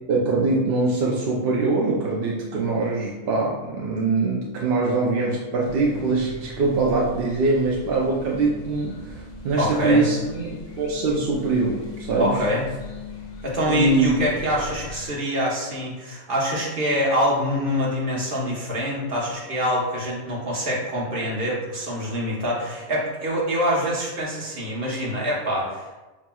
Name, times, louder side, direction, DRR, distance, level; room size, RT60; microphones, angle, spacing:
voice 1, 0.1-12.4 13.7-14.2, right 3 dB, 60° right, -3 dB, 0.6 m, -23 dB
sound 1, 5.6-15.1, left 2 dB, 50° left, 0.5 m, -39 dB
voice 2, 9.6-10.0 12.2-12.6 13.4-25.9, equal, 40° right, -4 dB, 1.1 m, -25 dB
5.7 x 2.9 x 2.2 m, 1.2 s
omnidirectional pair, 1.5 m